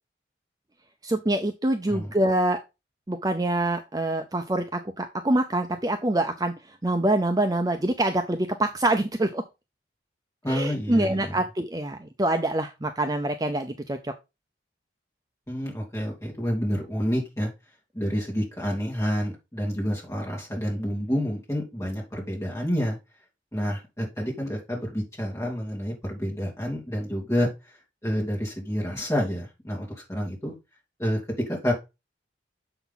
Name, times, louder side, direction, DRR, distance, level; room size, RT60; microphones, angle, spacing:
voice 1, 1.0-2.6 3.1-6.5 6.8-9.4 10.5-14.1, right 1 dB, 20° right, 6 dB, 0.5 m, -25 dB
voice 2, 10.4-11.4 15.5-17.5 17.9-23.0 23.5-27.5 28.0-30.5 31.0-31.7, equal, 15° left, -2 dB, 3.0 m, -28 dB
7.0 x 5.9 x 3.8 m, 0.25 s
head